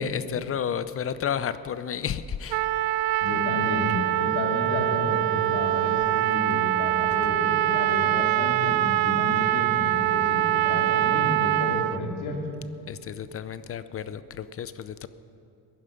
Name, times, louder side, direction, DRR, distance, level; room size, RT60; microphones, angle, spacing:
voice 1, 0.0-2.7 12.9-15.1, left 8 dB, 35° left, 14 dB, 0.6 m, -32 dB
Trumpet, 2.5-12.0, right 16 dB, 75° right, 0.5 m, -24 dB
voice 2, 3.2-12.4, left 2 dB, 90° left, 0 dB, 2.9 m, -31 dB
16.0 x 11.0 x 5.3 m, 2.7 s
cardioid pair, 110°, 38 cm